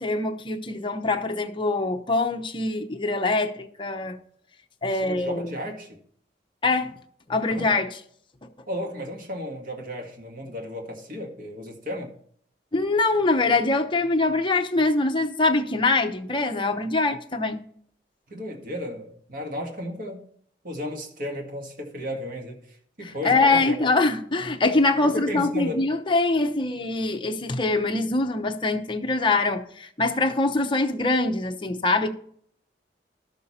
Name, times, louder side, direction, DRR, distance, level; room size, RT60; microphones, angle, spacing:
voice 1, 0.0-4.2 4.8-5.4 6.6-6.9 7.3-7.9 12.7-17.6 23.0-32.1, left 3 dB, 30° left, 0.9 m, -23 dB
voice 2, 4.9-6.0 7.6-7.7 8.7-12.1 18.3-20.2 20.6-23.9 25.0-25.9, equal, 50° right, 1.8 m, -34 dB
12.5 x 6.5 x 4.2 m
head